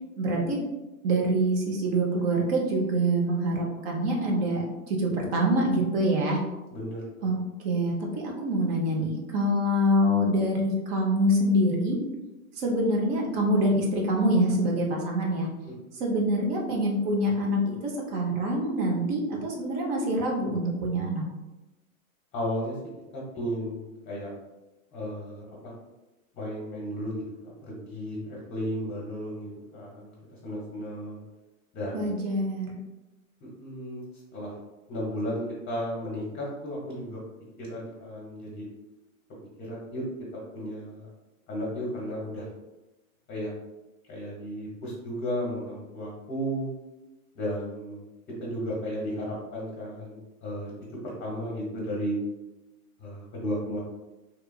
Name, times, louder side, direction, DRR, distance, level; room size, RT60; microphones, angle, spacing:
voice 1, 0.2-0.6 1.0-6.4 7.2-7.3 7.6-12.0 12.6-15.5 15.9-21.2 31.9-32.7, right 1 dB, 45° right, -1 dB, 0.6 m, -25 dB
voice 2, 6.7-7.0 15.7-15.9 22.3-22.7 23.1-24.3 24.9-25.7 26.4-31.2 31.7-32.1 33.4-34.0 34.3-34.5 34.9-37.2 37.6-38.6 39.6-40.1 40.3-41.1 41.5-42.5 43.3-43.5 44.1-46.7 47.3-48.0 48.4-50.7 51.0-52.2 53.0-53.8, equal, 20° left, -4 dB, 0.7 m, -34 dB
2.9 x 2.3 x 2.2 m, 1.1 s
hypercardioid pair, 115°, 42 cm